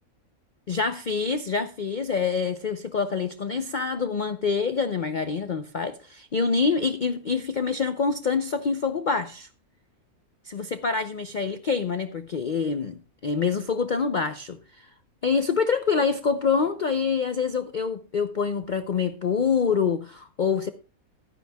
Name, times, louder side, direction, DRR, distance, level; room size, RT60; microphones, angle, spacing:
voice 1, 0.7-9.5 10.4-14.9 15.2-20.7, left 5 dB, 50° left, 0.6 m, -26 dB
15.5 x 12.0 x 2.3 m
omnidirectional pair, 1.5 m